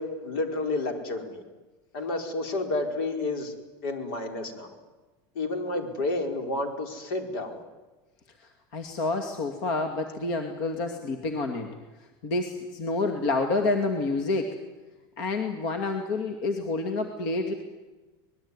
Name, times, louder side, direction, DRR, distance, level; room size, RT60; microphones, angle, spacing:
voice 1, 0.0-1.4 1.9-3.5 3.8-4.8 5.3-7.6, left 2 dB, 75° left, 5 dB, 5.0 m, -30 dB
voice 2, 8.7-11.7 12.2-14.5 15.2-17.5, left 3 dB, 50° left, 5 dB, 2.5 m, -28 dB
25.0 x 20.5 x 9.8 m, 1.2 s
supercardioid pair, 170°, 12 cm